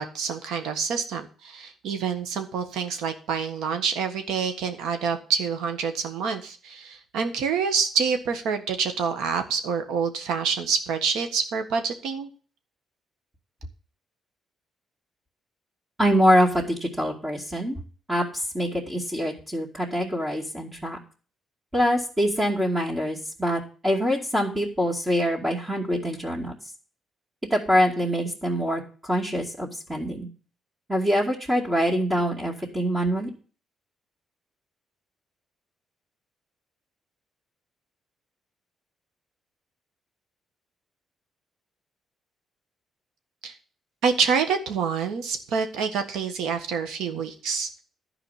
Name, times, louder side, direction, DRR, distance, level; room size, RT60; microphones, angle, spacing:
voice 1, 0.0-12.3 43.4-43.5 44.0-47.8, right 6 dB, 85° right, 7 dB, 1.5 m, -27 dB
voice 2, 16.0-17.8 18.1-18.2 18.5-21.0 21.7-26.5 27.5-30.3 30.9-33.3, equal, 15° right, -4 dB, 2.4 m, -24 dB
11.5 x 5.0 x 8.3 m, 0.39 s
cardioid pair, 90°, 0 cm